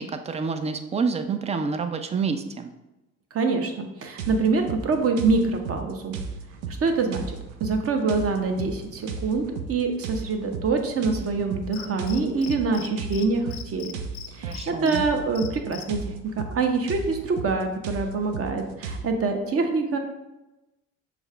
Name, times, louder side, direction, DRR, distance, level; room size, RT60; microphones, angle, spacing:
voice 1, 0.0-2.7 14.4-15.1, right 5 dB, 20° right, 8 dB, 0.3 m, -28 dB
voice 2, 3.3-6.1 6.8-7.2 7.6-13.4 13.7-13.9 14.4-16.1 16.5-20.0, right 4 dB, 40° right, 4 dB, 0.8 m, -25 dB
sound 1, 4.2-19.0, right 5 dB, 80° right, 0.5 m, -35 dB
Cricket, 11.7-12.9 13.1-13.2 13.5-15.0 15.3-15.8, left 12 dB, 60° left, 0.5 m, -39 dB
6.2 x 2.3 x 2.4 m, 1.0 s
hypercardioid pair, 60°, 38 cm